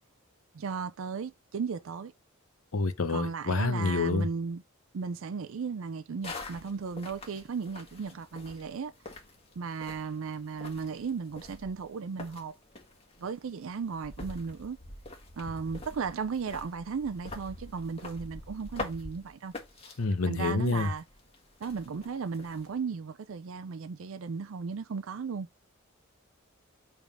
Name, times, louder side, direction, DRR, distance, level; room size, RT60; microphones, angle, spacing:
voice 1, 0.5-2.1 3.1-4.6 4.9-8.9 9.6-12.6 13.2-14.8 15.4-19.5 20.3-21.0 21.6-25.5, right 5 dB, 70° right, 0.4 m, -35 dB
voice 2, 2.7-4.3 20.0-20.9, left 3 dB, 85° left, 0.7 m, -28 dB
sound 1, 6.2-22.8, left 2 dB, 30° left, 1.6 m, -46 dB
7.0 x 3.6 x 5.2 m
head